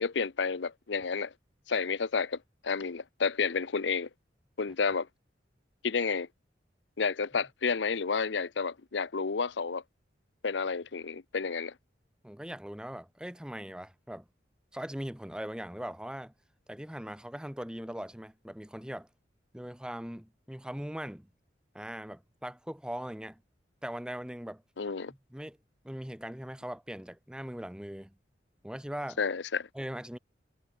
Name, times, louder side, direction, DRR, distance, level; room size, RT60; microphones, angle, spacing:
voice 1, 0.0-1.3 1.7-4.1 4.6-5.1 5.8-6.3 7.0-9.8 10.4-11.7 24.8-25.1 29.2-29.7, left 5 dB, 85° left, 0.7 m, -31 dB
voice 2, 12.2-14.3 14.7-16.3 16.7-19.1 19.5-21.3 21.7-23.4 23.8-24.6 25.1-25.6 25.8-28.1 28.6-29.2 29.7-30.2, equal, 5° right, 1.0 m, -40 dB
head